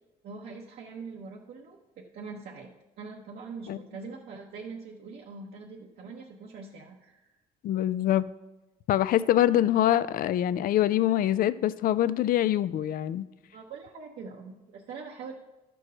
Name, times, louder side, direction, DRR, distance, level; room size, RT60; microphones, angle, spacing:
voice 1, 0.2-2.7 3.0-7.3 13.5-15.3, right 4 dB, 65° right, -2 dB, 1.0 m, -43 dB
voice 2, 7.6-8.3 8.9-13.3, left 12 dB, 55° left, 16 dB, 0.4 m, -24 dB
11.5 x 4.6 x 6.4 m, 1.0 s
cardioid pair, 110°, 17 cm